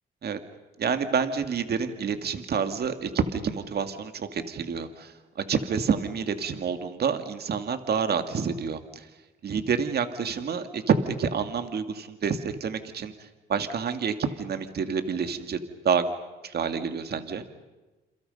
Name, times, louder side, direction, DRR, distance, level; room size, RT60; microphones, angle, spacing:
voice 1, 0.8-5.1 5.5-9.1 9.4-13.1 13.5-16.1 16.4-17.4, right 6 dB, 55° right, 8 dB, 2.1 m, -28 dB
29.0 x 28.0 x 5.4 m, 1.1 s
cardioid pair, 90°, 20 cm